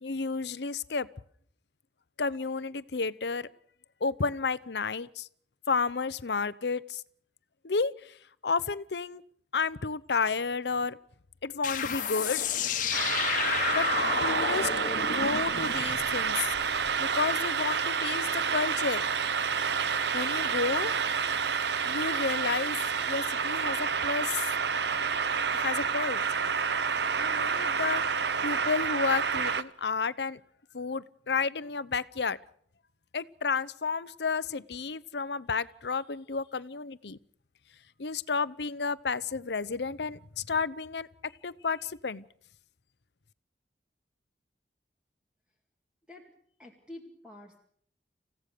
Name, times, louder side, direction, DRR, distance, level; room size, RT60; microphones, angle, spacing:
voice 1, 0.0-1.1 2.2-3.5 4.0-5.3 5.7-7.0 7.6-8.1 8.4-9.2 9.5-11.0 11.4-12.5 13.7-13.8 14.2-14.7 15.1-16.5 17.0-19.0 20.1-20.9 21.8-22.8 23.1-24.5 25.5-26.2 27.2-28.0 28.4-30.4 30.7-32.4 33.1-37.2 38.0-42.3, left 4 dB, 70° left, 17 dB, 0.8 m, -31 dB
sound 1, 11.6-16.9, left 6 dB, 50° left, 1.5 m, -31 dB
sound 2, 12.9-29.6, right 6 dB, 70° right, 0.9 m, -29 dB
voice 2, 46.6-47.6, left 1 dB, 5° right, 0 dB, 2.5 m, -47 dB
29.0 x 16.0 x 6.8 m, 0.63 s
head